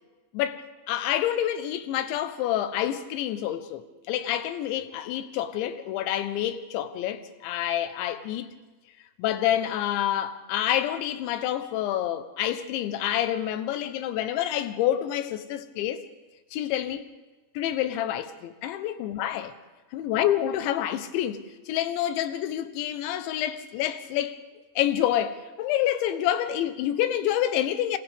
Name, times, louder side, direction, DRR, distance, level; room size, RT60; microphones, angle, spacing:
voice 1, 0.3-8.5 9.2-16.0 16.5-17.1 17.5-19.5 19.9-24.4 24.8-28.0, left 11 dB, 85° left, 3.3 m, -28 dB
29.0 x 26.5 x 3.6 m
omnidirectional pair, 5.2 m